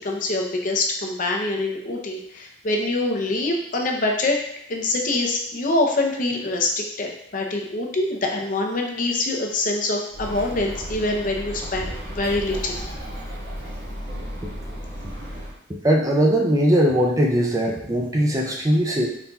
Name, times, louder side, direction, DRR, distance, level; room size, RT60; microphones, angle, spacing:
voice 1, 0.0-4.4 4.7-12.8, left 2 dB, 45° left, 1 dB, 0.6 m, -25 dB
Bird, 10.1-15.6, equal, 90° right, 1.3 m, -34 dB
voice 2, 15.7-19.1, equal, 20° right, -1 dB, 0.5 m, -20 dB
4.1 x 3.8 x 2.3 m, 0.72 s
head